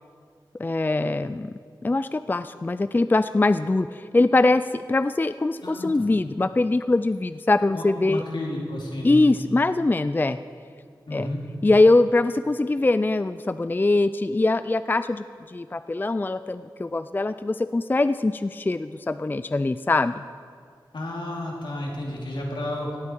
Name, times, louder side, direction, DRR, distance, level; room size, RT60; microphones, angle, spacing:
voice 1, 0.6-1.5 1.8-8.2 9.0-10.4 11.1-11.3 11.6-20.2, left 2 dB, 25° left, 12 dB, 0.3 m, -22 dB
voice 2, 7.7-9.2 11.1-11.4 20.9-23.0, left 1 dB, 75° left, -2 dB, 2.8 m, -31 dB
17.5 x 8.4 x 4.5 m, 2.2 s
cardioid pair, 50°, 8 cm